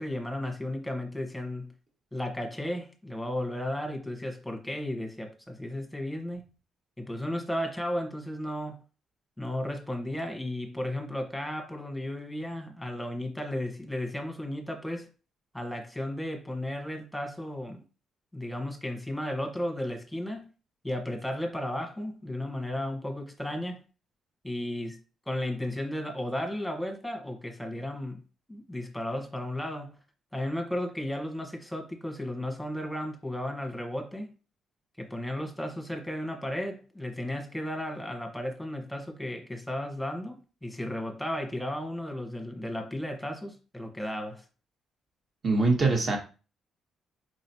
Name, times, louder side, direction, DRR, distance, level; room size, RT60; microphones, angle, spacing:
voice 1, 0.0-1.7 2.1-6.4 7.0-8.8 9.4-15.1 15.5-17.8 18.3-20.5 20.8-23.8 24.4-25.0 25.3-28.2 28.5-30.0 30.3-34.3 35.0-44.4, left 1 dB, 5° left, 1.2 m, -34 dB
voice 2, 45.4-46.2, right 3 dB, 40° right, 1.6 m, -23 dB
4.9 x 3.0 x 2.8 m
cardioid pair, 90°, 0 cm